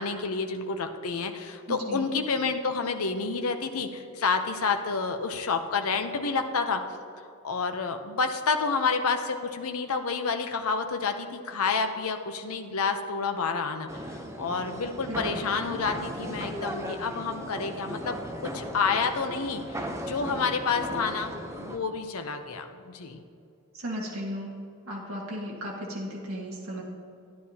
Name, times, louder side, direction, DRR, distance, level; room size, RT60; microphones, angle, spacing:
voice 1, 0.0-6.8 7.4-23.2, left 4 dB, 75° left, 6 dB, 0.7 m, -29 dB
voice 2, 1.7-2.1 15.1-15.2 23.7-26.8, equal, 70° right, -3 dB, 1.7 m, -35 dB
sound 1, 13.9-21.8, equal, 15° right, 0.7 m, -37 dB
13.0 x 10.5 x 2.8 m, 2.5 s
head